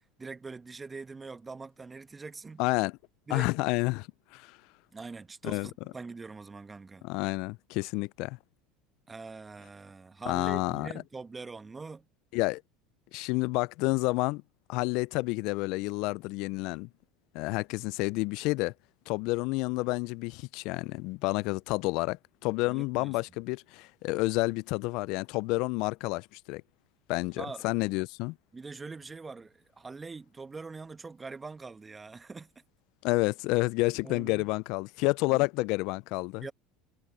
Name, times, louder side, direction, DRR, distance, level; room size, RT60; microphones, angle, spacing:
voice 1, 0.2-2.6 3.3-3.5 4.9-7.0 9.1-12.1 22.7-23.2 27.4-27.7 28.5-32.5 34.0-34.5 35.3-35.5 36.4-36.5, right 4 dB, 20° right, 1.2 m, -43 dB
voice 2, 2.6-2.9 3.3-4.1 4.3-4.6 5.4-5.7 7.0-8.4 10.3-10.9 12.3-12.6 13.1-14.4 14.7-16.9 17.3-18.7 19.1-26.6 27.1-28.3 33.0-36.5, left 24 dB, 65° left, 0.3 m, -29 dB
supercardioid pair, 100°, 0 cm